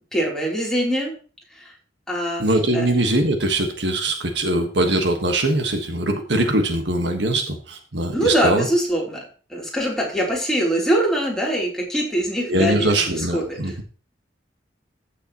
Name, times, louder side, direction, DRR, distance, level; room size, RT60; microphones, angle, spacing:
voice 1, 0.1-1.1 1.5-1.7 2.1-2.5 2.7-2.9 8.1-9.2 9.5-13.6, right 1 dB, 5° left, -3 dB, 3.3 m, -23 dB
voice 2, 2.4-8.7 12.5-13.7, right 1 dB, 70° right, 5 dB, 1.5 m, -22 dB
15.0 x 6.7 x 3.0 m, 0.37 s
head